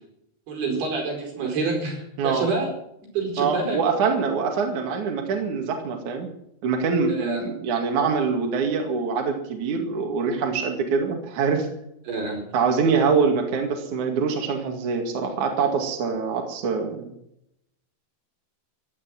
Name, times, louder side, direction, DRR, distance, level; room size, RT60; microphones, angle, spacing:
voice 1, 0.5-2.7 3.1-3.8 7.1-7.4 12.1-12.4, right 3 dB, 80° right, 2 dB, 6.9 m, -27 dB
voice 2, 3.4-6.3 6.6-11.7 12.5-17.1, right 5 dB, 55° right, 3 dB, 3.4 m, -24 dB
15.5 x 11.5 x 7.8 m, 0.77 s
omnidirectional pair, 4.5 m